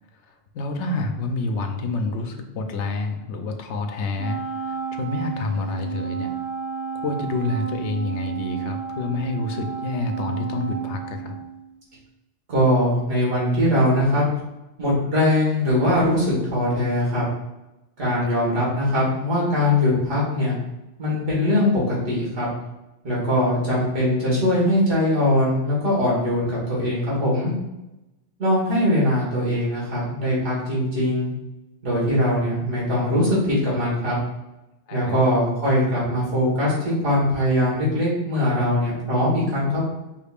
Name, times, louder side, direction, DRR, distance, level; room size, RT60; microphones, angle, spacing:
voice 1, 0.1-6.3 6.9-11.4 18.2-18.3 23.5-23.6 34.9-35.2, left 3 dB, 80° left, 5 dB, 0.9 m, -28 dB
Wind instrument woodwind instrument, 4.2-11.8, right 7 dB, 70° right, 0.9 m, -31 dB
voice 2, 12.5-14.2 14.8-17.2 18.0-20.6 21.0-22.5 23.0-27.5 28.4-31.3 31.8-34.2 34.9-39.9, left 1 dB, 90° right, -5 dB, 1.9 m, -21 dB
5.2 x 2.4 x 3.4 m, 0.96 s
omnidirectional pair, 1.2 m